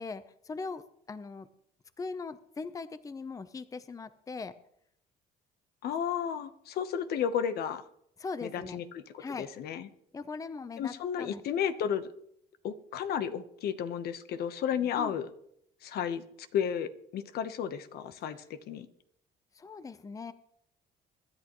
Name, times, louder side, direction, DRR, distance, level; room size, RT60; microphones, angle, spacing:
voice 1, 0.0-1.5 2.0-4.5 8.2-8.8 9.2-9.5 10.1-11.4 15.0-15.2 19.5-20.3, left 4 dB, 20° left, 13 dB, 0.7 m, -40 dB
voice 2, 5.8-7.8 8.4-9.9 10.8-12.1 12.6-15.3 15.8-16.2 16.5-18.9, left 8 dB, 70° left, 11 dB, 1.0 m, -33 dB
25.0 x 11.0 x 3.1 m, 0.73 s
cardioid pair, 110°, 17 cm